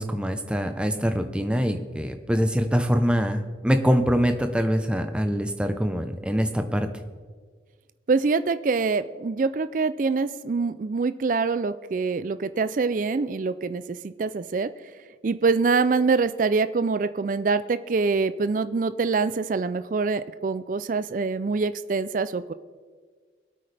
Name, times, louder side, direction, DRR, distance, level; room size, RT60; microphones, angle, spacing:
voice 1, 0.0-6.9, equal, 5° right, 7 dB, 0.7 m, -24 dB
voice 2, 8.1-14.7 15.2-22.5, right 4 dB, 45° right, 13 dB, 0.4 m, -25 dB
22.0 x 8.6 x 3.4 m, 1.5 s
head